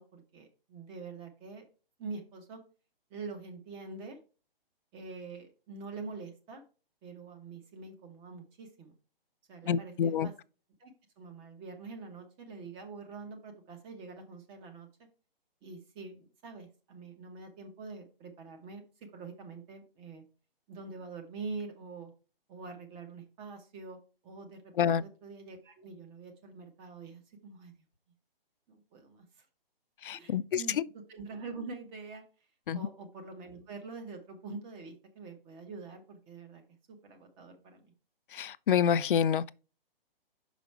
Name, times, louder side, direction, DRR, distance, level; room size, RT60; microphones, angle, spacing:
voice 1, 0.0-1.6 2.0-2.6 3.1-4.2 4.9-6.6 7.0-8.9 9.5-10.3 10.8-14.9 15.6-18.8 19.1-20.2 20.7-22.1 22.5-24.0 24.2-27.7 28.7-29.5 30.1-32.2 32.7-36.6 36.9-37.9, right 4 dB, 15° right, 1.0 m, -45 dB
voice 2, 9.7-10.3 24.8-25.0 30.0-30.6 32.7-32.8 38.3-39.5, left 8 dB, 60° left, 0.5 m, -27 dB
6.1 x 5.1 x 4.5 m
hypercardioid pair, 150°, 30 cm